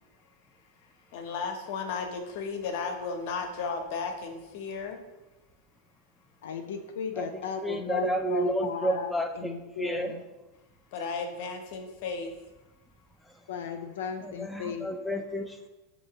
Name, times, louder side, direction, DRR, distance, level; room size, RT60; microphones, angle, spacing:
voice 1, 1.1-5.0 10.9-12.3, left 5 dB, 60° left, 4 dB, 0.7 m, -34 dB
voice 2, 6.4-10.2 13.5-14.9, left 6 dB, 80° left, 4 dB, 0.4 m, -35 dB
voice 3, 7.6-10.1 13.2-13.5 14.2-15.7, right 1 dB, ahead, 4 dB, 0.3 m, -31 dB
6.3 x 2.7 x 2.8 m, 1.1 s
hypercardioid pair, 120°, 0 cm